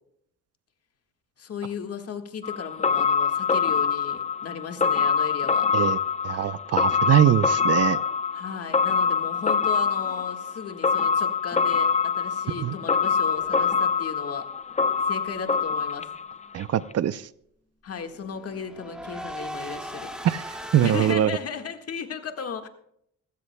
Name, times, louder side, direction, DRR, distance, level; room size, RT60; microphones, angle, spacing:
voice 1, 1.4-5.7 8.3-14.5 15.0-16.1 17.8-20.1 20.8-22.7, left 6 dB, 50° left, 6 dB, 1.7 m, -35 dB
sound 1, 2.4-16.6 16.9-17.0, left 6 dB, 25° left, 0.7 m, -25 dB
voice 2, 6.2-8.0 12.6-12.7 16.5-17.3 20.2-21.3, right 11 dB, 55° right, 16 dB, 0.6 m, -22 dB
sound 2, 13.4-14.3 18.0-21.1, equal, 5° right, 2.0 m, -39 dB
19.0 x 16.0 x 2.2 m, 0.70 s
cardioid pair, 90°, 30 cm